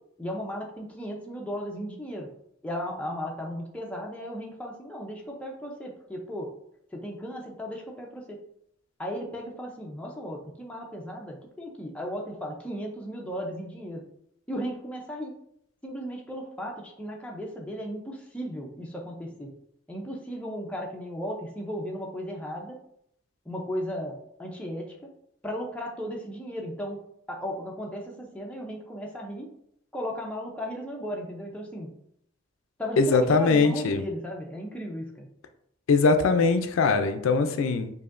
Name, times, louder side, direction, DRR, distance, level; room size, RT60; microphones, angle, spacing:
voice 1, 0.2-2.3 2.6-6.5 6.9-8.4 9.0-14.0 14.5-15.3 15.8-19.5 19.9-22.8 23.5-25.1 25.4-27.0 27.3-29.5 29.9-31.9 32.8-35.3, equal, 5° left, -1 dB, 0.5 m, -36 dB
voice 2, 33.0-34.0 35.9-37.9, left 4 dB, 75° left, 8 dB, 0.4 m, -21 dB
4.8 x 2.6 x 2.5 m, 0.72 s
head